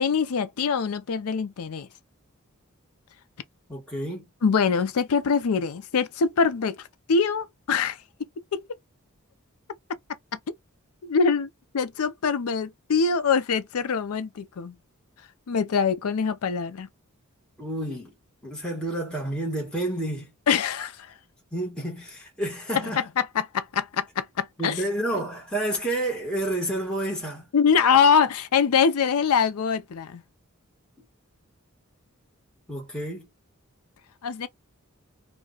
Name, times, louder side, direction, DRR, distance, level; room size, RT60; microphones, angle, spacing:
voice 1, 0.0-1.9 4.4-8.0 8.5-8.6 11.0-14.8 15.5-16.9 20.5-21.1 23.0-24.8 27.5-30.2 34.2-34.5, left 6 dB, 85° left, 0.5 m, -24 dB
voice 2, 3.7-4.2 17.6-18.1 18.4-20.3 21.5-23.0 24.6-27.5 32.7-33.3, right 1 dB, 5° left, 1.1 m, -30 dB
2.3 x 2.2 x 3.7 m
head